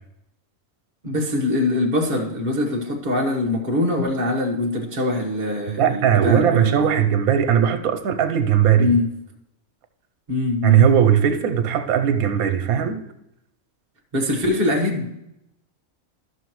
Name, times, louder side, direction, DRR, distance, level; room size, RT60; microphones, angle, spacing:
voice 1, 1.0-6.9 8.8-9.1 10.3-10.9 14.1-15.1, left 2 dB, 35° right, 1.3 m, -23 dB
voice 2, 5.7-8.9 10.6-13.0, right 9 dB, 80° right, 1.2 m, -18 dB
13.0 x 6.3 x 3.1 m
omnidirectional pair, 1.5 m